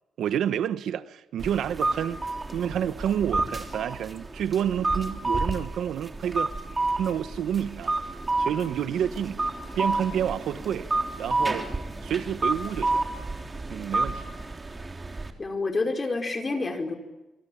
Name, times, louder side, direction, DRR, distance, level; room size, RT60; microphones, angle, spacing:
voice 1, 0.2-6.5 7.0-7.9 8.4-9.4 9.7-10.9 11.2-11.7 12.0-13.1 13.7-14.2, right 9 dB, 80° right, 1.2 m, -29 dB
sound 1, 1.4-15.3, right 2 dB, 20° right, 3.3 m, -30 dB
voice 2, 15.4-16.9, left 3 dB, 25° left, 4.9 m, -28 dB
27.5 x 23.5 x 8.8 m
cardioid pair, 125°, 0 cm